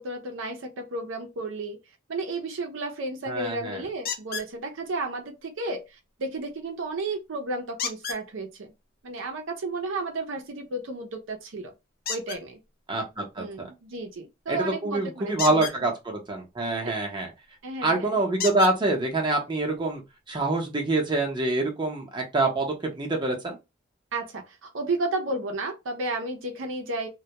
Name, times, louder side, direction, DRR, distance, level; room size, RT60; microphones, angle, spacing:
voice 1, 0.0-1.8 2.1-8.7 9.0-11.7 12.1-12.6 13.4-15.7 16.8-16.9 17.6-18.1 24.1-27.1, right 2 dB, 75° right, 0.5 m, -33 dB
voice 2, 3.3-3.8 12.9-13.7 14.5-17.3 17.8-20.0 20.3-23.6, right 2 dB, 25° right, 0.7 m, -26 dB
sound 1, 4.1-4.5 7.8-8.2 12.0-12.4 15.3-15.8 17.4-17.5 18.4-18.7 19.7-19.8 20.3-20.4, left 6 dB, 50° left, 0.5 m, -32 dB
2.2 x 2.1 x 2.8 m
head